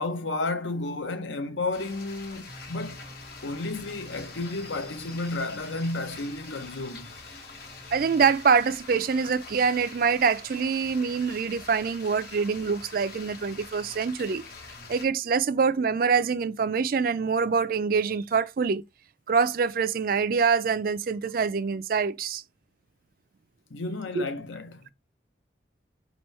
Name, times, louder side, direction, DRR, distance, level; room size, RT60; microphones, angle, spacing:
voice 1, 0.0-3.0 3.4-7.2 23.7-24.9, left 2 dB, 90° left, 0.8 m, -32 dB
sound 1, 1.7-15.1, left 4 dB, 55° left, 1.0 m, -45 dB
sound 2, 2.5-8.3, equal, 5° left, 0.5 m, -49 dB
voice 2, 7.9-14.4 14.9-18.8 19.3-22.4 24.1-24.2, right 5 dB, 50° right, 0.3 m, -25 dB
5.3 x 3.0 x 3.1 m
head